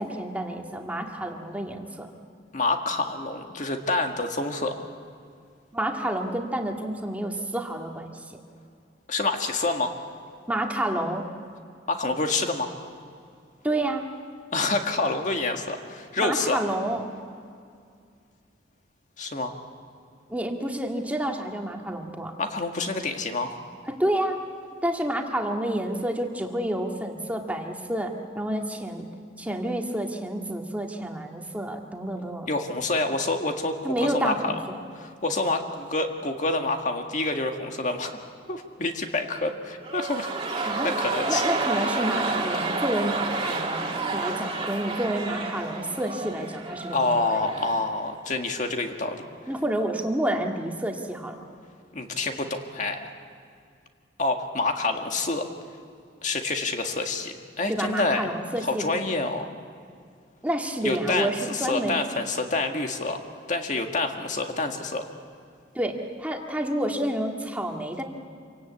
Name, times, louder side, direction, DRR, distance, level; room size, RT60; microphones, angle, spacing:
voice 1, 0.0-2.1 5.7-8.4 10.5-11.3 13.6-14.1 16.2-17.0 20.3-22.3 23.9-24.4 24.8-29.1 29.4-32.5 33.8-34.8 40.7-41.0 41.3-47.6 49.5-51.4 57.7-58.9 60.4-62.0 65.7-68.0, right 1 dB, 10° right, 2 dB, 1.9 m, -29 dB
voice 2, 2.5-4.8 9.1-10.0 11.9-12.7 14.5-16.6 19.2-19.5 22.4-23.6 32.5-34.6 34.9-38.2 38.5-41.5 46.9-49.2 51.9-53.1 54.2-55.5 56.2-58.3 58.7-59.5 60.8-63.2 63.5-65.1, left 2 dB, 45° left, 4 dB, 1.8 m, -27 dB
sound 1, 39.8-47.9 48.2-48.3, right 3 dB, 30° right, 2.3 m, -30 dB
26.5 x 17.5 x 8.6 m, 2.3 s
head